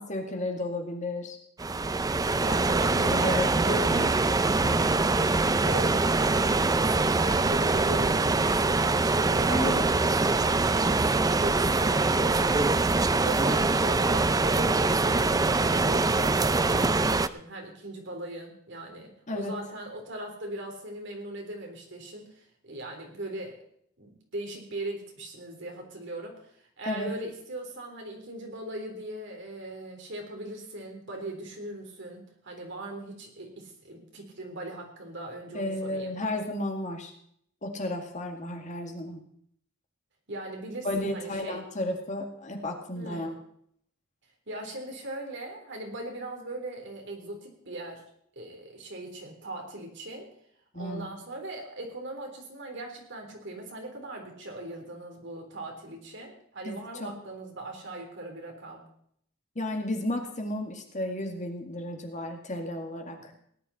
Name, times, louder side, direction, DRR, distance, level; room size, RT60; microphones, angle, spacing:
voice 1, 0.0-1.4 2.9-4.1 4.6-4.9 9.5-9.9 19.3-19.5 26.8-27.1 35.5-37.1 37.6-39.2 40.8-43.3 50.7-51.1 56.6-57.1 59.6-63.3, left 1 dB, 35° left, 3 dB, 2.1 m, -33 dB
sound 1, 1.6-17.3, right 3 dB, 20° right, 0.4 m, -24 dB
voice 2, 2.4-4.2 5.6-12.8 13.2-23.6 24.0-36.1 40.3-41.6 42.9-43.4 44.5-48.0 48.4-50.3 50.7-58.8 63.1-63.3, right 1 dB, 60° right, 2 dB, 3.7 m, -39 dB
18.0 x 11.0 x 4.3 m, 0.66 s
head